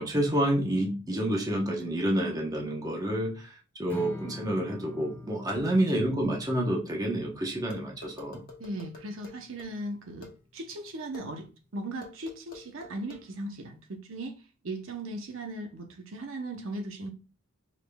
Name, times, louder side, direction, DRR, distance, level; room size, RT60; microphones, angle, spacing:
voice 1, 0.0-8.4, right 1 dB, 15° right, 0.9 m, -29 dB
Strum, 3.9-10.2, left 2 dB, 10° left, 0.5 m, -45 dB
sound 1, 7.7-9.7 10.2-10.3 11.1-11.3 12.0-13.2, left 3 dB, 45° left, 1.0 m, -45 dB
voice 2, 8.6-11.5 11.7-17.1, right 1 dB, 65° right, 0.8 m, -38 dB
5.0 x 3.7 x 2.3 m
head